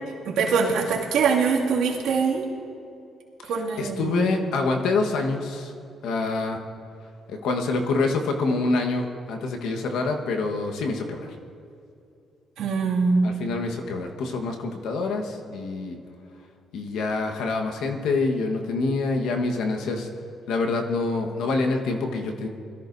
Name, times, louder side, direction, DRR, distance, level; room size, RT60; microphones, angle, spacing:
voice 1, 0.2-2.5 3.5-4.4 12.6-13.3, right 5 dB, 85° right, -4 dB, 2.3 m, -23 dB
voice 2, 3.8-5.7 6.0-6.6 7.3-11.3 13.2-16.0 16.7-20.1 20.5-22.5, left 3 dB, 85° left, 3 dB, 1.3 m, -26 dB
21.5 x 14.0 x 2.7 m, 2.6 s
cardioid pair, 90°, 0 cm